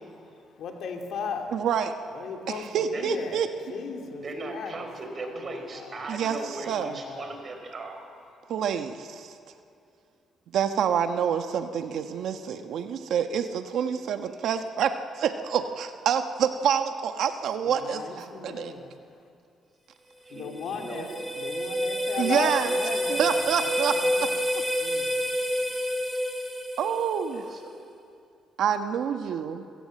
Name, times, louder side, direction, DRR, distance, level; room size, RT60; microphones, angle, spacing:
voice 1, 0.6-1.5 2.1-3.4 3.7-4.9 5.2-6.0 6.5-7.4 17.7-19.0 20.3-21.1 21.3-24.3 24.8-25.1 25.6-25.7, left 5 dB, 75° left, 3 dB, 2.8 m, -37 dB
voice 2, 1.5-1.9 2.5-3.5 6.1-6.9 8.5-9.3 10.5-18.7 22.2-22.7 23.1-24.2 26.8-27.5 28.6-29.6, right 8 dB, 75° right, 7 dB, 1.1 m, -27 dB
voice 3, 4.2-8.0 20.3-21.1 27.3-27.9, right 2 dB, 40° right, 5 dB, 4.5 m, -38 dB
sound 1, 20.3-27.4, equal, 5° left, 3.0 m, -29 dB
26.0 x 17.0 x 7.7 m, 2.5 s
cardioid pair, 90°, 0 cm